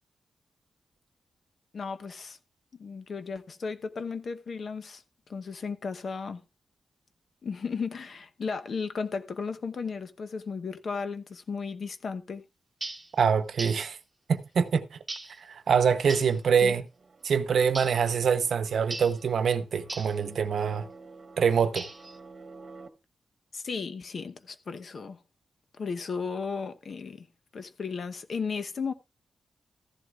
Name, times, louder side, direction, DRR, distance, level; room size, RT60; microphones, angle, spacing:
voice 1, 1.7-2.4 2.7-5.0 5.3-6.4 7.4-12.4 16.6-16.8 23.5-25.2 25.8-27.3 27.5-28.9, left 5 dB, 60° left, 0.9 m, -35 dB
sound 1, 12.8-13.1 13.6-13.9 15.1-15.4 16.1-16.4 17.7-18.0 18.9-19.2 19.9-20.2 21.8-22.2, right 2 dB, 20° right, 1.3 m, -38 dB
voice 2, 13.2-14.0 14.3-15.0 15.5-16.8 17.2-20.9 21.4-21.9, right 6 dB, 75° right, 0.8 m, -25 dB
sound 2, 16.9-22.9, right 3 dB, 45° right, 1.2 m, -50 dB
14.5 x 11.0 x 2.4 m
wide cardioid pair, 105°, 0 cm